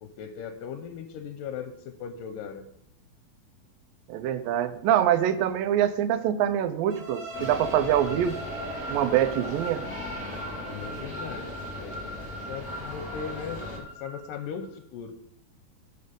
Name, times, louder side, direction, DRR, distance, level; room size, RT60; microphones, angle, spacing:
voice 1, 0.0-2.7 9.4-9.5 10.5-15.2, left 7 dB, 80° left, 8 dB, 2.2 m, -39 dB
voice 2, 4.1-8.4 8.9-9.8, right 10 dB, 80° right, 12 dB, 2.3 m, -24 dB
sound 1, 6.9-14.7, equal, 40° right, 3.7 m, -40 dB
sound 2, 7.3-13.8, left 1 dB, ahead, 3.1 m, -38 dB
12.0 x 6.8 x 5.1 m, 0.74 s
omnidirectional pair, 4.2 m